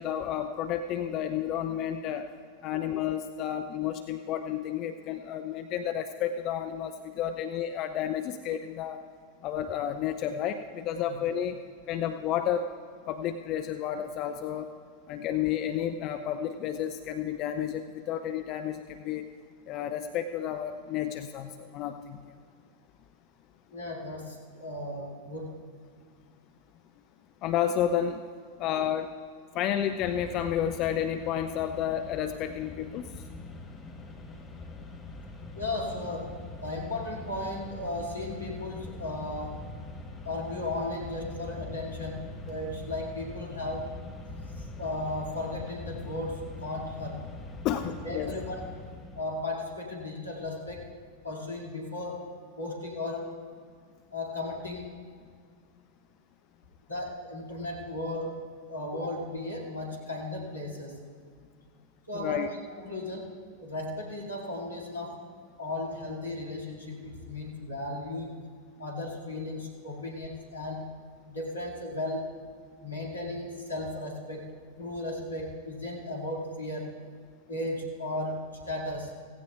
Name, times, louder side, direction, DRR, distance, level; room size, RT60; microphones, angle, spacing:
voice 1, 0.0-2.3 2.6-9.0 9.4-11.6 11.9-12.7 13.1-14.7 15.1-19.3 19.7-22.4 27.4-28.2 28.6-29.1 29.5-33.1 47.6-48.3 62.1-62.5, left 10 dB, 40° left, 8 dB, 0.5 m, -31 dB
voice 2, 23.7-25.6 35.5-39.7 40.2-44.0 44.5-47.3 47.8-51.0 51.2-53.4 54.1-55.0 56.9-61.0 62.1-62.5 62.8-65.3 65.6-68.4 68.8-70.9 71.3-72.4 72.8-77.0 77.5-79.2, left 2 dB, 80° left, -3 dB, 2.3 m, -36 dB
Mechanisms, 30.0-49.4, left 2 dB, 15° left, 1.3 m, -43 dB
16.5 x 16.0 x 2.4 m, 2.1 s
figure-of-eight pair, 90°, 0 cm